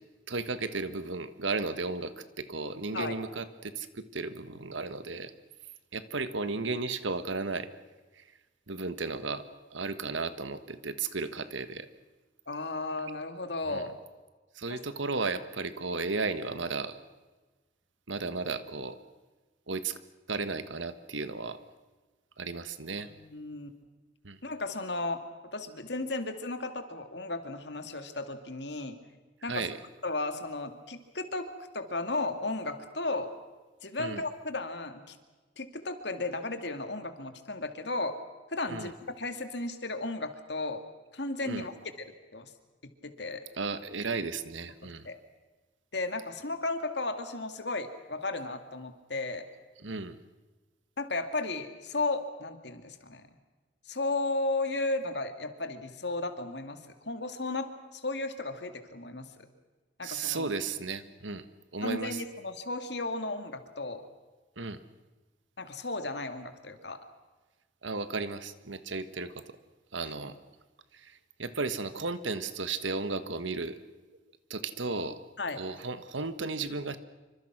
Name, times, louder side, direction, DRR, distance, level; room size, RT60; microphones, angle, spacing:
voice 1, 0.3-5.3 5.9-7.7 8.2-8.3 8.7-9.4 9.7-11.9 13.7-13.8 14.5-17.0 18.1-18.9 19.7-20.0 20.3-21.6 22.4-23.1 24.2-24.4 29.4-29.8 34.0-34.2 38.7-38.9 41.4-41.7 43.5-45.1 49.8-50.2 60.0-61.4 61.7-62.2 64.6-64.8 67.8-69.4 69.9-70.3 70.9-73.8 74.5-75.2 75.6-77.0, right 3 dB, 80° right, 12 dB, 1.5 m, -34 dB
voice 2, 12.5-13.9 14.7-14.8 22.9-23.7 24.4-25.2 25.5-29.0 29.4-29.6 30.0-31.5 31.7-33.3 33.8-35.2 35.6-38.2 38.5-40.8 41.1-41.7 42.3-42.5 43.0-43.4 45.0-45.2 45.9-49.4 51.0-53.2 53.9-59.5 60.0-60.5 61.8-64.0 65.6-67.0 70.0-70.1 75.4-75.6, left 2 dB, 65° left, 8 dB, 2.4 m, -34 dB
27.0 x 25.5 x 6.1 m, 1.3 s
head